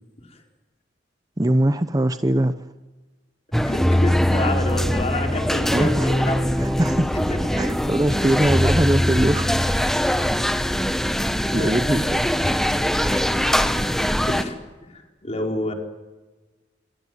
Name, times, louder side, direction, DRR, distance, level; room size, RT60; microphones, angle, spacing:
voice 1, 1.4-2.7 5.7-5.9 6.6-7.1 7.6-9.5 11.5-12.6, right 1 dB, 20° right, 10 dB, 0.8 m, -21 dB
voice 2, 3.5-6.8 7.1-7.6 9.7-10.5 11.4-12.6 13.1-13.5 14.2-15.7, left 2 dB, 35° left, 2 dB, 4.6 m, -30 dB
sound 1, 3.5-14.4, equal, ahead, 1.4 m, -22 dB
28.0 x 22.0 x 7.9 m, 1.2 s
head